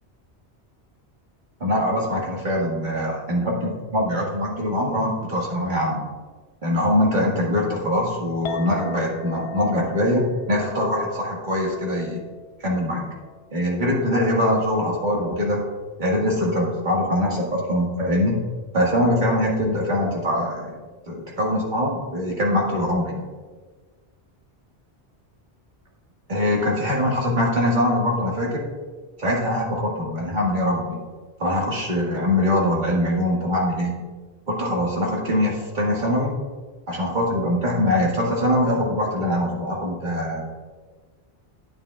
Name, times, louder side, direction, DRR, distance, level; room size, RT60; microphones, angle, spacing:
voice 1, 1.6-6.0 6.6-12.2 12.6-13.0 13.5-15.7 16.0-18.4 18.7-20.7 21.1-23.2 26.3-28.6 29.2-31.0 31.4-33.9 34.5-36.4 36.9-40.4, left 1 dB, 45° right, -3 dB, 1.8 m, -23 dB
Chink clink, 8.5-14.7, left 7 dB, 75° left, 0.8 m, -40 dB
9.9 x 8.9 x 2.4 m, 1.4 s
omnidirectional pair, 1.1 m